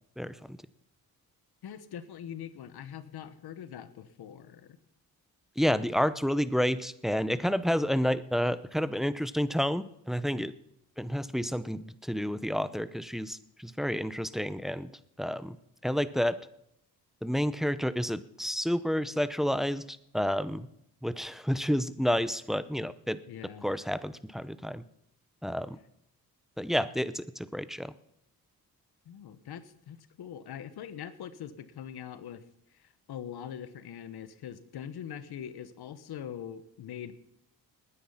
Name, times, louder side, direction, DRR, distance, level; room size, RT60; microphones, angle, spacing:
voice 1, 0.2-0.6 5.6-10.5 11.0-14.9 15.2-15.6 15.8-16.4 17.2-20.7 21.0-23.2 23.6-24.8 25.4-25.8 26.6-27.9, equal, ahead, 14 dB, 0.7 m, -30 dB
voice 2, 1.6-4.8 23.3-23.7 29.0-32.4 32.7-37.1, left 9 dB, 85° left, 13 dB, 1.3 m, -43 dB
19.5 x 10.0 x 5.7 m, 0.79 s
cardioid pair, 90°, 38 cm